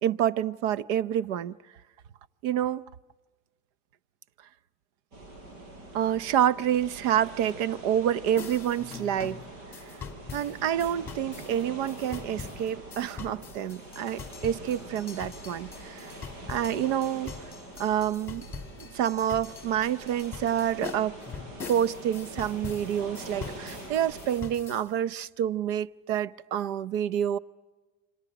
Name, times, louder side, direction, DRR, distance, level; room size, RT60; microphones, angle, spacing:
voice 1, 0.0-1.6 2.4-2.8 5.9-9.4 10.3-16.1 16.5-17.3 17.8-18.5 18.8-21.2 21.7-27.4, right 10 dB, 65° right, 0.7 m, -28 dB
sound 1, 5.1-24.4, right 1 dB, 85° right, 7.2 m, -44 dB
sound 2, 8.4-24.9, left 6 dB, 5° left, 1.8 m, -43 dB
28.5 x 26.0 x 5.9 m
cardioid pair, 180°, 38 cm